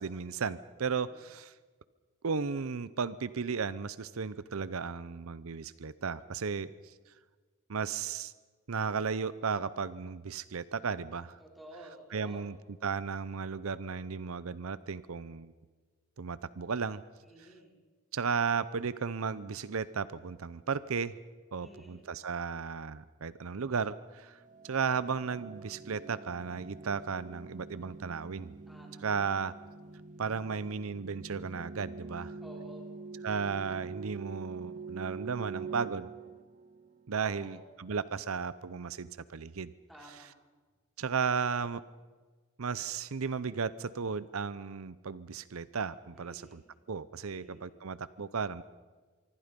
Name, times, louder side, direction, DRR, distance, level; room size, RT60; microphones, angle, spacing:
voice 1, 0.0-1.5 2.2-6.9 7.7-8.3 8.7-11.4 12.1-12.6 12.8-15.5 16.2-17.0 18.1-21.1 21.5-24.4 24.6-28.5 29.0-29.5 30.2-32.4 33.2-36.1 37.1-39.7 41.0-41.8 42.6-46.6 46.9-48.6, right 5 dB, 75° right, 16 dB, 0.7 m, -34 dB
voice 2, 0.9-1.2 11.4-12.5 17.2-17.8 21.6-22.1 28.7-29.1 32.4-32.9 37.1-37.6 39.9-40.4 46.1-46.6 47.2-47.8, right 1 dB, ahead, -2 dB, 4.9 m, -53 dB
sound 1, 24.4-37.1, right 4 dB, 35° right, 0.6 m, -45 dB
25.5 x 24.0 x 5.3 m, 1.4 s
head